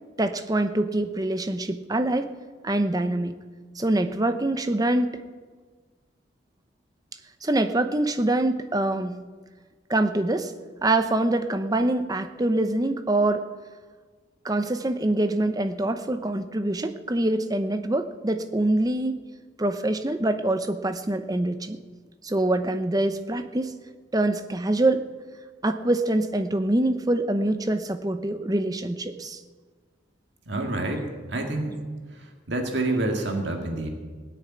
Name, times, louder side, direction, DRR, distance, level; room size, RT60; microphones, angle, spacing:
voice 1, 0.2-2.3 2.6-3.3 3.8-5.1 7.4-9.1 9.9-10.5 10.8-13.5 14.4-19.2 19.6-21.8 22.2-23.8 24.1-25.1 25.6-29.4, right 1 dB, 20° right, 9 dB, 0.7 m, -25 dB
voice 2, 30.5-31.8 32.1-33.9, right 2 dB, 60° right, 3 dB, 1.9 m, -28 dB
17.0 x 6.7 x 9.5 m, 1.5 s
head